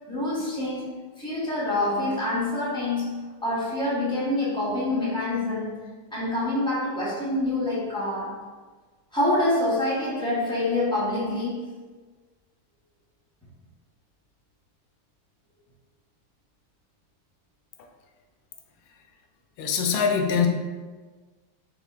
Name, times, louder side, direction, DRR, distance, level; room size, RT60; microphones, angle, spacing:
voice 1, 0.1-5.8 6.1-8.4 9.1-11.8, left 1 dB, 5° left, -9 dB, 0.6 m, -26 dB
voice 2, 19.6-20.5, left 6 dB, 85° left, 3 dB, 1.4 m, -23 dB
6.0 x 2.8 x 2.4 m, 1.4 s
omnidirectional pair, 2.1 m